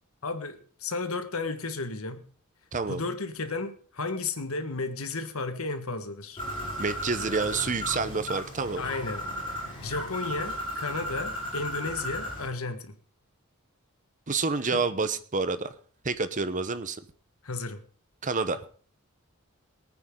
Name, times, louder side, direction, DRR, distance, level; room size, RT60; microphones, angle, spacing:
voice 1, 0.2-2.2 2.9-6.4 8.8-9.2 9.8-12.9 14.7-14.8 17.4-17.8, left 3 dB, 70° left, 1.6 m, -33 dB
voice 2, 2.7-3.0 6.8-8.8 14.3-15.7 16.0-17.0 18.2-18.6, right 4 dB, 35° right, 0.9 m, -28 dB
Bird, 6.4-12.5, equal, 25° left, 6.6 m, -35 dB
23.0 x 9.4 x 3.8 m
head